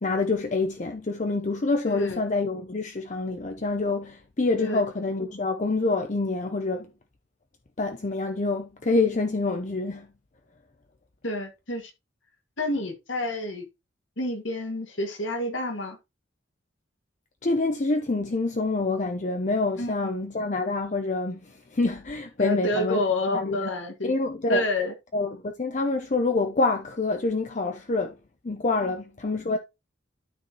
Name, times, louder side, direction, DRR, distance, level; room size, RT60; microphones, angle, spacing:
voice 1, 0.0-6.9 7.8-10.1 17.4-23.0 23.3-23.7 24.0-24.6 25.1-28.2 28.4-29.6, left 3 dB, 40° left, 0.7 m, -26 dB
voice 2, 1.9-2.2 4.6-4.8 11.2-11.9 12.6-13.6 14.2-16.0 19.8-19.9 22.4-24.1 24.5-24.9 28.8-28.9, left 1 dB, 80° left, 2.1 m, -28 dB
12.5 x 4.3 x 3.0 m
head